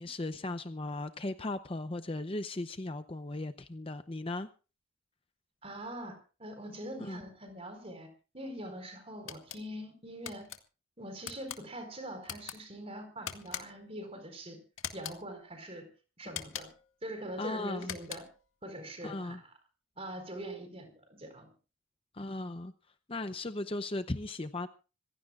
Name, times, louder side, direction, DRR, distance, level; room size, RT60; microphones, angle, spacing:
voice 1, 0.0-4.5 7.0-7.2 17.4-18.0 19.0-19.4 22.1-22.7 23.1-24.7, left 2 dB, 25° left, 10 dB, 0.7 m, -37 dB
voice 2, 5.6-10.5 11.0-14.6 14.9-15.9 16.2-16.7 17.0-18.2 18.6-19.5 20.0-21.5, right 1 dB, 30° right, 7 dB, 4.4 m, -43 dB
sound 1, 9.3-9.6 10.2-10.6 11.2-11.6 12.2-12.6 13.2-13.9 14.8-15.2 16.3-16.9 17.8-18.4, left 9 dB, 80° left, 2.0 m, -42 dB
26.5 x 16.0 x 2.4 m, 0.34 s
head